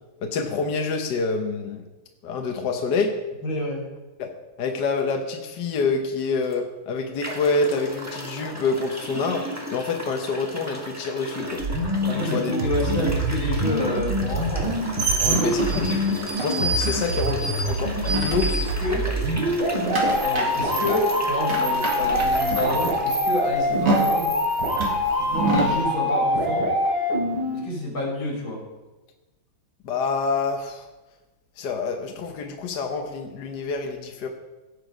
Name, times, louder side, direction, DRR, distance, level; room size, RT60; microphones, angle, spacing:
voice 1, 0.2-1.8 2.2-3.1 4.2-4.3 4.6-11.6 12.2-12.5 15.2-16.1 16.4-18.6 19.6-19.7 29.8-30.9 31.6-34.3, left 4 dB, 60° left, 3 dB, 1.5 m, -27 dB
voice 2, 3.4-3.9 12.0-14.7 15.2-15.5 18.4-18.5 18.8-19.1 20.2-24.3 25.2-26.7 27.5-28.6, left 1 dB, 85° left, -3 dB, 4.4 m, -28 dB
sound 1, 6.4-6.5 7.2-23.1, equal, 10° right, 1.5 m, -35 dB
sound 2, 11.6-27.6, equal, 90° right, 4.2 m, -25 dB
sound 3, 14.5-19.1 19.4-25.8, right 3 dB, 60° right, 2.7 m, -28 dB
17.5 x 6.4 x 5.1 m, 1.1 s
omnidirectional pair, 2.2 m